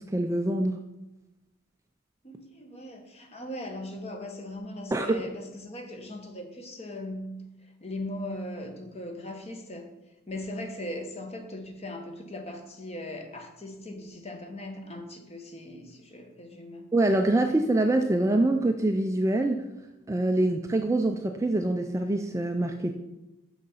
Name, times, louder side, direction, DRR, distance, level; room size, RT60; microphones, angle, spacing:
voice 1, 0.1-0.8 4.9-5.2 16.9-19.6 20.1-22.9, right 2 dB, 15° right, 4 dB, 0.3 m, -25 dB
voice 2, 2.2-9.9 10.3-16.9, left 1 dB, 25° left, 5 dB, 1.0 m, -39 dB
6.5 x 6.3 x 5.5 m, 1.0 s
head